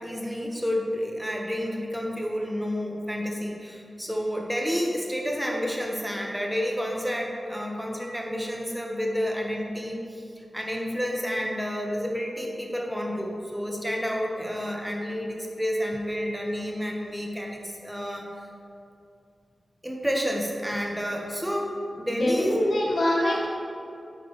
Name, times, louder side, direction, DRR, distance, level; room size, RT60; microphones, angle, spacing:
voice 1, 0.0-10.2 10.5-18.3 19.8-22.6, equal, 5° right, 0 dB, 1.4 m, -30 dB
voice 2, 22.1-23.5, left 1 dB, 75° left, -4 dB, 1.7 m, -24 dB
12.0 x 4.6 x 3.3 m, 2.6 s
cardioid pair, 45°, 0 cm